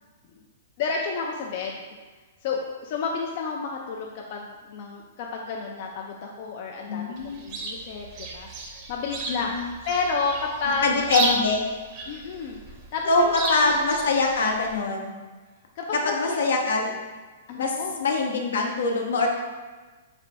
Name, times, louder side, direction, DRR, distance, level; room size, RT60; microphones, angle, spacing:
voice 1, 0.8-1.8 2.4-8.5 8.9-11.4 12.1-12.6 12.9-13.7 15.8-16.4 17.5-18.0, left 4 dB, 50° left, -1 dB, 0.4 m, -31 dB
voice 2, 6.9-7.4 9.3-9.6 10.8-11.6 13.1-15.1 16.0-16.9 17.6-19.3, left 3 dB, 80° left, 1 dB, 0.7 m, -24 dB
Chirp tweet, 7.2-14.8, right 3 dB, 40° right, 0.7 m, -34 dB
4.2 x 2.2 x 4.1 m, 1.3 s
hypercardioid pair, 135°, 0 cm